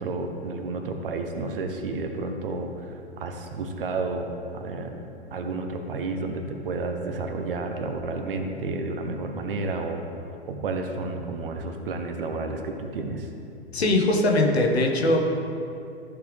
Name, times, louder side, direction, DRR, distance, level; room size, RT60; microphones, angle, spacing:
voice 1, 0.0-5.0 5.3-10.1 10.5-13.3, right 3 dB, 55° right, 5 dB, 1.0 m, -31 dB
voice 2, 13.7-15.2, left 2 dB, 70° left, 1 dB, 1.4 m, -21 dB
14.0 x 4.7 x 3.4 m, 2.6 s
figure-of-eight pair, 110°, 33 cm